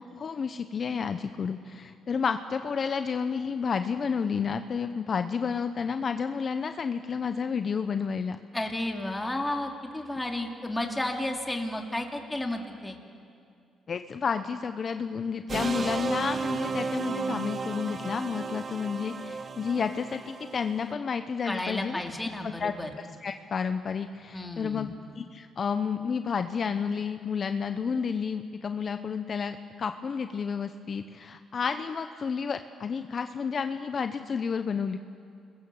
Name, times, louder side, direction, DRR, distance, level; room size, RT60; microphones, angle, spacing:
voice 1, 0.2-8.4 13.9-22.0 22.4-22.7 23.0-24.9 25.2-35.0, left 6 dB, 45° left, 9 dB, 0.8 m, -31 dB
voice 2, 8.5-13.0 21.4-22.9 24.3-24.9, left 1 dB, 10° left, 2 dB, 2.8 m, -32 dB
sound 1, 15.5-20.8, right 4 dB, 40° right, 1.3 m, -33 dB
27.5 x 21.5 x 7.1 m, 2.5 s
cardioid pair, 90°, 0 cm